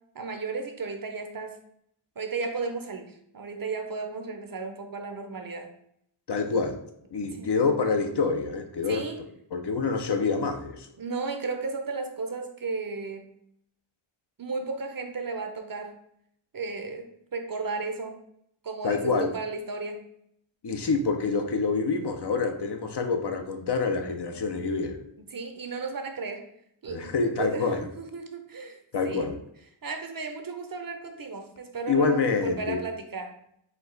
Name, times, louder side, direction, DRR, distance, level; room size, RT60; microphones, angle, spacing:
voice 1, 0.1-1.5 2.2-5.7 7.4-7.5 8.9-9.2 11.0-13.3 14.4-15.9 16.5-18.2 18.6-20.0 25.2-26.4 26.8-29.2 29.8-33.3, right 4 dB, 45° right, 5 dB, 0.6 m, -34 dB
voice 2, 6.3-6.8 7.1-9.0 9.5-10.9 18.8-19.3 20.6-25.0 26.9-27.8 28.9-29.4 31.9-32.8, left 4 dB, 55° left, 5 dB, 0.6 m, -26 dB
4.5 x 2.3 x 3.8 m, 0.73 s
wide cardioid pair, 85°, 50 cm